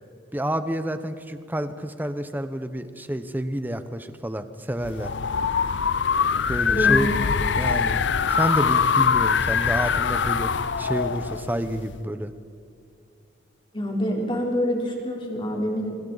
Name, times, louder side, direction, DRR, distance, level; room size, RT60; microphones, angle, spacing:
voice 1, 0.3-5.1 6.5-7.1 7.6-8.0 8.3-10.5 10.8-12.3, right 1 dB, 10° right, 10 dB, 0.9 m, -29 dB
sound 1, 4.8-12.0, left 6 dB, 65° left, 0.6 m, -23 dB
voice 2, 6.7-7.1 13.7-16.0, equal, 25° left, -1 dB, 3.6 m, -26 dB
27.0 x 25.0 x 4.1 m, 2.3 s
head